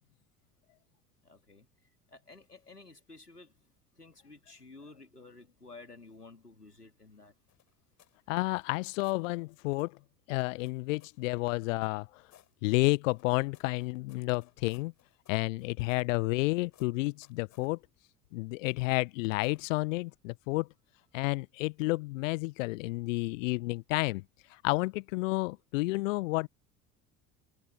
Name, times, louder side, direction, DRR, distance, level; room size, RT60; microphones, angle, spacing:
voice 1, 1.2-1.7 2.1-3.5 3.9-7.3, left 3 dB, 90° left, 2.7 m, -52 dB
sound 1, 7.5-8.2 8.5-9.2 9.7-10.0 10.6-11.2 11.8-12.5 13.1-16.5 16.7-17.7 18.6-19.0 19.4-19.7, left 12 dB, 40° left, 7.4 m, -65 dB
voice 2, 8.3-10.0 10.3-12.2 12.6-14.9 15.3-17.8 18.3-20.7 21.1-24.2 24.5-26.5, left 23 dB, 55° left, 1.3 m, -31 dB
figure-of-eight pair, 70°, 45 cm